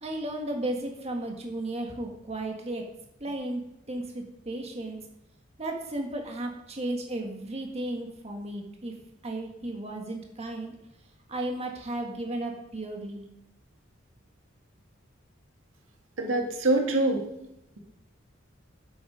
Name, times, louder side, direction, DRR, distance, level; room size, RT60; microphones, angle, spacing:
voice 1, 0.0-2.8 3.2-3.6 3.9-5.0 5.6-8.9 9.2-10.8 11.3-13.3, right 1 dB, 35° right, 1 dB, 1.8 m, -34 dB
voice 2, 16.2-17.2, right 2 dB, 85° right, 3 dB, 2.1 m, -24 dB
11.5 x 8.5 x 5.1 m, 0.82 s
head